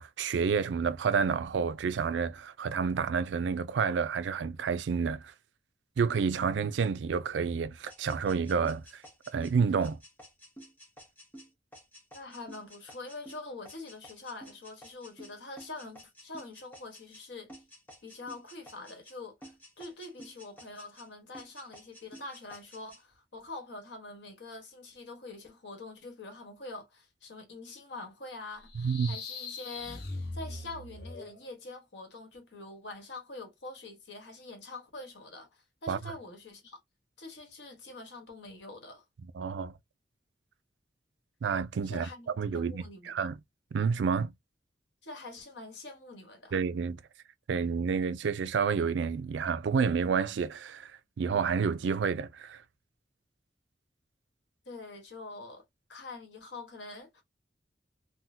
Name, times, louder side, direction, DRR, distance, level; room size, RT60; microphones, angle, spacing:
voice 1, 0.0-5.3 6.0-9.0 9.3-10.0 28.8-29.2 35.9-36.0 39.3-39.7 41.4-43.4 43.7-44.3 46.5-47.0 47.5-50.9 51.2-52.6, right 6 dB, 90° right, 0.4 m, -29 dB
sound 1, 7.9-17.2 17.5-19.2 19.4-21.1 21.3-23.0, equal, 10° left, 1.0 m, -52 dB
voice 2, 12.1-17.5 18.0-30.0 30.3-36.8 37.2-39.0 41.8-43.3 45.0-46.6 54.6-55.6 55.9-57.2, left 2 dB, 85° left, 1.3 m, -45 dB
sound 2, 28.6-31.5, left 3 dB, 65° left, 0.8 m, -41 dB
3.6 x 2.1 x 2.7 m
head